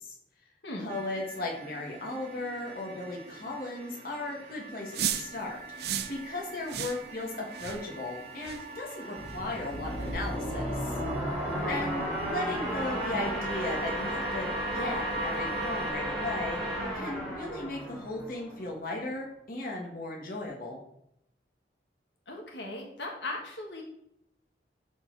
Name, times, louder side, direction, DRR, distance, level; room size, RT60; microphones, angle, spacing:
voice 1, 0.8-5.6 6.1-10.9 11.7-20.8, left 2 dB, 50° left, -1 dB, 1.6 m, -36 dB
sound 1, 0.9-15.9, right 2 dB, 35° right, 1.2 m, -43 dB
sound 2, 4.9-5.3 5.8-6.2 6.7-7.0 7.5-7.8 8.4-8.6 9.3-9.4 10.0-10.2, right 9 dB, 60° right, 0.5 m, -33 dB
sound 3, 9.2-18.7, equal, 5° left, 2.4 m, -33 dB
voice 2, 22.3-23.8, left 2 dB, 75° left, 0 dB, 1.6 m, -38 dB
11.5 x 4.2 x 4.0 m, 0.76 s
head